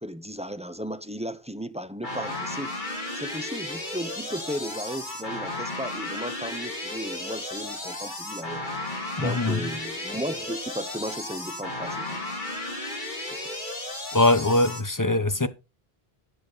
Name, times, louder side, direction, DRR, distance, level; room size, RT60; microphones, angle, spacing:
voice 1, 0.0-2.8 3.1-8.7 9.2-12.2 13.3-13.4, equal, 5° right, 0.7 m, -35 dB
sound 1, 2.0-14.8, left 2 dB, 45° left, 3.0 m, -34 dB
voice 2, 9.2-9.6 14.1-15.5, left 2 dB, 20° left, 0.9 m, -22 dB
15.0 x 7.4 x 4.0 m
omnidirectional pair, 1.1 m